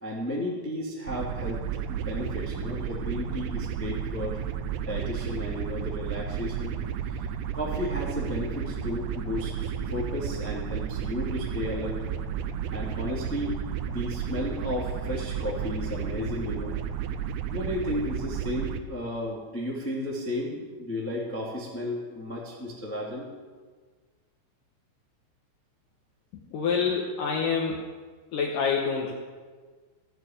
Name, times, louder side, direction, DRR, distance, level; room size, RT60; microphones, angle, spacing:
voice 1, 0.0-1.6 1.9-4.4 4.8-6.7 7.0-7.2 7.5-12.0 12.7-16.7 17.5-23.3, left 1 dB, 5° left, -4 dB, 1.2 m, -33 dB
sound 1, 1.1-18.8, right 8 dB, 85° right, 3.1 m, -32 dB
voice 2, 26.3-27.8 28.3-29.1, left 5 dB, 80° left, 0 dB, 1.9 m, -27 dB
15.5 x 9.2 x 9.1 m, 1.5 s
omnidirectional pair, 5.7 m